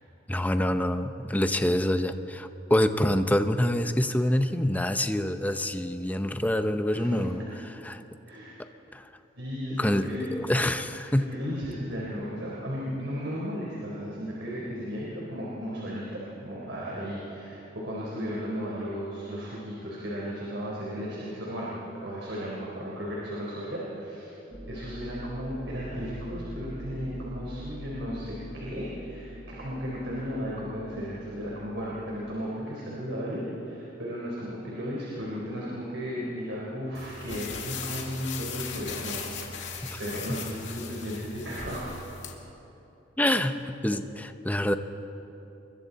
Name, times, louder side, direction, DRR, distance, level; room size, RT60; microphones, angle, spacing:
voice 1, 0.3-7.4 7.8-8.0 8.9-9.1 9.7-11.3 39.9-40.0 40.3-40.4 43.2-44.8, left 1 dB, 10° left, 8 dB, 0.7 m, -26 dB
voice 2, 6.9-7.2 8.3-8.6 9.4-10.4 11.1-21.7 22.0-24.3 24.7-41.9, equal, 70° right, -5 dB, 4.2 m, -35 dB
sound 1, 24.5-32.4, equal, 20° right, 1.3 m, -43 dB
sound 2, 36.9-42.3, left 5 dB, 75° left, 2.3 m, -38 dB
28.0 x 22.5 x 4.2 m, 3.0 s
head